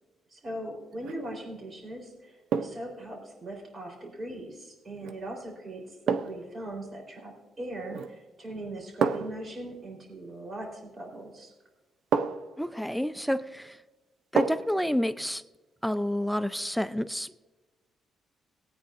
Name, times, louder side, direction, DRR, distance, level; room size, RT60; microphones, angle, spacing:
voice 1, 0.3-11.5, right 1 dB, 35° right, 1 dB, 3.8 m, -40 dB
sound 1, 0.9-1.3 2.5-2.9 5.0-5.2 6.1-6.5 7.9-8.3 9.0-9.5 11.1-11.2 12.1-12.6 14.4-14.8 15.2-15.3, right 6 dB, 75° right, 0.5 m, -29 dB
voice 2, 12.6-13.8 14.3-15.4 15.8-17.5, equal, ahead, 12 dB, 0.4 m, -29 dB
19.5 x 9.0 x 2.6 m, 1.2 s
cardioid pair, 90°, 0 cm